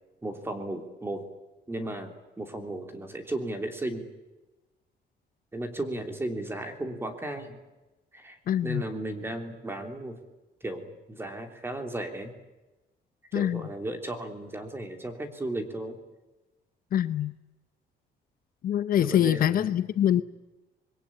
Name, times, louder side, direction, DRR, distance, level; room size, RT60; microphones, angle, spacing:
voice 1, 0.2-1.3 1.7-4.1 5.5-7.6 8.1-8.4 8.6-10.2 10.6-12.3 13.3-16.0 19.0-19.7, right 1 dB, 15° right, 3.1 m, -35 dB
voice 2, 8.5-8.8 13.3-13.6 16.9-17.3 18.6-20.2, left 11 dB, 55° left, 0.8 m, -24 dB
26.0 x 22.0 x 8.8 m
cardioid pair, 170°, 18 cm